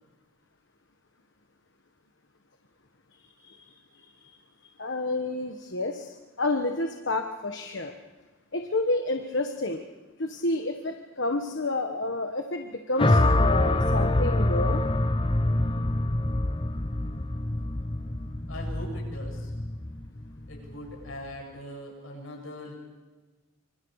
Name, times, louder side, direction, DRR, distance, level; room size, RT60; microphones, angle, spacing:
voice 1, 4.8-7.9 8.5-9.8 10.2-14.8, left 2 dB, 60° left, 4 dB, 1.3 m, -30 dB
Metal Hit, 13.0-21.2, left 1 dB, 25° left, 0.8 m, -25 dB
voice 2, 18.5-19.5 20.5-22.7, equal, 80° left, 1 dB, 7.4 m, -41 dB
25.5 x 25.5 x 4.9 m, 1.2 s
head